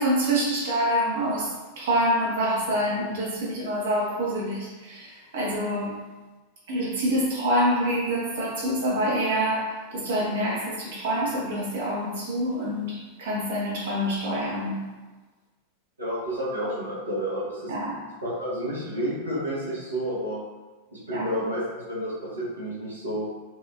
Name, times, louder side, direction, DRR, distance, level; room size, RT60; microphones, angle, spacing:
voice 1, 0.0-6.0 6.7-14.8 17.7-18.0 21.1-21.3, equal, 60° right, -4 dB, 1.1 m, -26 dB
voice 2, 16.0-17.7 18.2-20.4 20.9-23.3, equal, 80° right, -8 dB, 1.4 m, -30 dB
4.9 x 2.7 x 2.4 m, 1.2 s
figure-of-eight pair, 90°, 0 cm